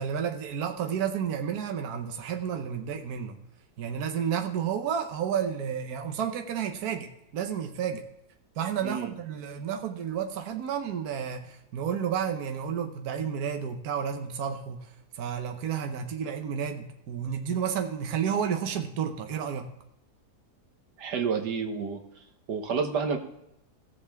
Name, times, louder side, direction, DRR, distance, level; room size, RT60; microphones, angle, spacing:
voice 1, 0.0-3.4 3.8-8.0 8.6-19.7, right 8 dB, 70° right, 5 dB, 1.4 m, -31 dB
voice 2, 8.8-9.1 21.0-22.0 22.5-23.2, right 5 dB, 90° right, 6 dB, 1.8 m, -29 dB
16.0 x 7.4 x 3.5 m, 0.86 s
omnidirectional pair, 1.7 m